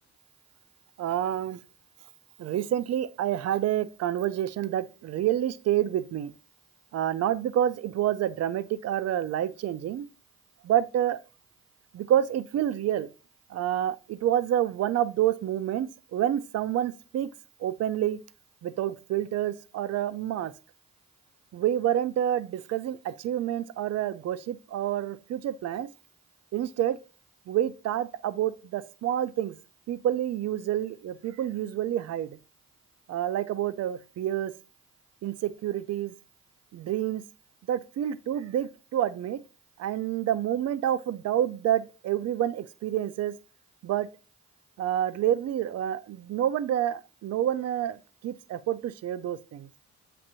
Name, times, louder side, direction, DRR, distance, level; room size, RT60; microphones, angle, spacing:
voice 1, 1.0-1.6 2.4-6.3 6.9-10.1 10.6-11.2 11.9-13.1 13.5-17.3 17.6-18.2 18.6-20.5 21.5-25.9 26.5-27.0 27.5-29.6 29.9-32.4 33.1-34.5 35.2-36.1 36.7-37.2 37.7-39.4 39.8-43.4 43.8-44.1 44.8-49.7, right 11 dB, 55° right, 0.5 m, -28 dB
7.5 x 2.5 x 2.8 m
cardioid pair, 90°, 30 cm